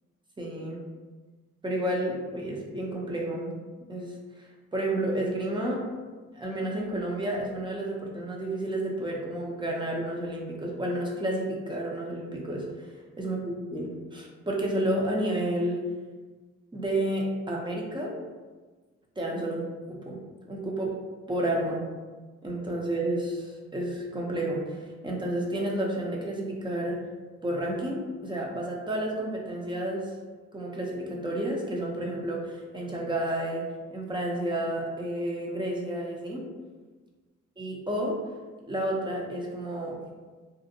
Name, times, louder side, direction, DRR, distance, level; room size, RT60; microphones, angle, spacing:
voice 1, 0.4-0.8 1.6-3.6 3.9-4.1 4.7-5.9 6.3-12.9 13.2-15.8 16.7-18.2 19.2-20.2 20.5-21.0 21.3-21.8 22.4-27.0 27.4-30.1 30.5-36.5 37.6-38.2 38.7-40.0, right 1 dB, 15° right, -2 dB, 0.5 m, -31 dB
2.6 x 2.1 x 2.7 m, 1.3 s
cardioid pair, 90°, 30 cm